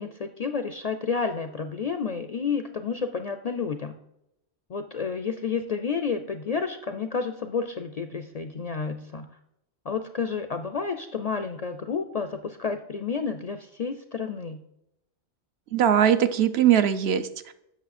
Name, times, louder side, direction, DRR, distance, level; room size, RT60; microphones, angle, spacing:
voice 1, 0.0-4.0 4.7-9.3 9.9-14.6, left 5 dB, 55° left, 8 dB, 0.4 m, -30 dB
voice 2, 15.7-17.5, right 9 dB, 70° right, 10 dB, 0.9 m, -21 dB
8.0 x 6.2 x 4.2 m, 0.83 s
omnidirectional pair, 1.1 m